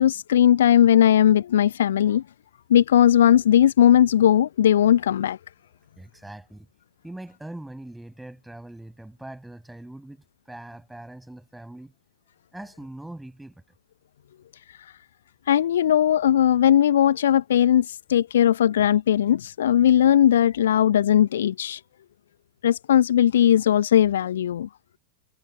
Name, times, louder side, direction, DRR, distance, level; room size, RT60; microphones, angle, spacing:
voice 1, 0.0-2.2 2.7-5.4 15.5-21.8 22.6-24.7, left 10 dB, 60° left, 0.7 m, -18 dB
voice 2, 6.0-6.7 7.0-11.9 12.5-13.6, right 1 dB, 5° right, 6.6 m, -41 dB
figure-of-eight pair, 90°, 0 cm